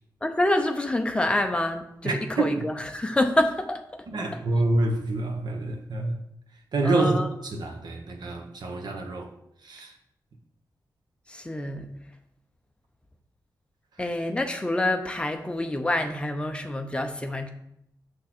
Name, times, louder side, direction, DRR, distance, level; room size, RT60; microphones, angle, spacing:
voice 1, 0.2-4.0 6.8-7.3 11.3-12.0 14.0-17.5, left 1 dB, 15° left, 5 dB, 0.7 m, -27 dB
voice 2, 2.0-2.6 4.1-6.2 6.7-7.2 7.4-9.3 9.6-9.9, right 2 dB, 75° right, 3 dB, 1.1 m, -27 dB
7.1 x 6.2 x 4.4 m, 0.78 s
wide cardioid pair, 175°, 7 cm